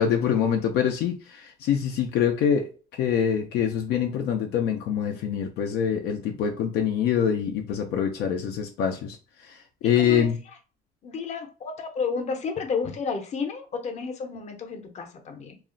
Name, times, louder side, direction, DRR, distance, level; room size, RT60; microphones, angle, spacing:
voice 1, 0.0-2.7 3.0-9.2 9.4-10.4, left 8 dB, 80° left, 0.5 m, -25 dB
voice 2, 9.8-10.3 11.0-15.6, left 5 dB, 45° left, 0.7 m, -31 dB
2.4 x 2.0 x 3.7 m
cardioid pair, 110°, 17 cm